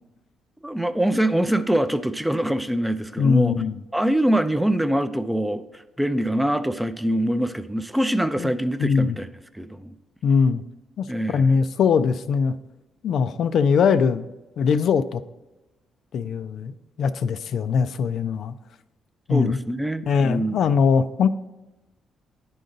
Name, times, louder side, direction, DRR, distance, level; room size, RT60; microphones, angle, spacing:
voice 1, 0.6-3.5 3.9-9.3 9.5-9.9 11.1-11.4 19.3-20.6, right 1 dB, 5° right, 11 dB, 0.4 m, -24 dB
voice 2, 3.2-3.8 8.4-8.5 8.8-9.2 10.2-10.6 11.0-12.5 13.0-14.3 14.6-15.2 16.1-18.5 19.3-19.6 20.1-21.3, left 6 dB, 65° left, 12 dB, 0.3 m, -21 dB
9.9 x 3.9 x 3.9 m, 1.0 s
cardioid pair, 90°, 0 cm